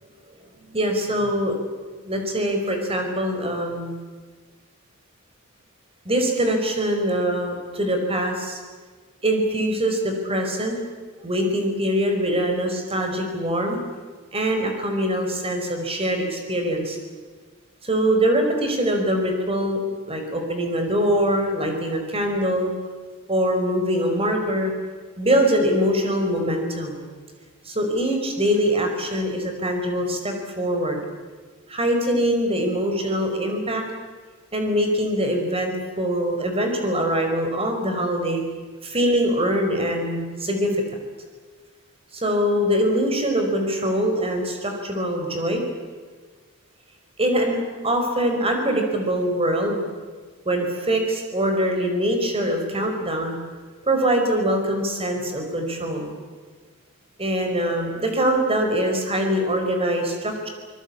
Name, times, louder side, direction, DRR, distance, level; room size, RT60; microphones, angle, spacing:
voice 1, 0.7-1.5 2.0-3.9 6.0-8.6 9.2-10.8 11.2-13.8 14.3-17.0 17.8-19.8 20.1-22.7 23.3-24.7 25.2-27.0 27.6-31.0 31.7-33.8 34.5-38.4 38.8-40.7 42.1-45.6 47.2-47.6 47.8-49.8 50.4-53.3 53.9-56.1 57.2-60.5, equal, 25° right, 4 dB, 4.9 m, -23 dB
25.0 x 22.0 x 8.6 m, 1.5 s
head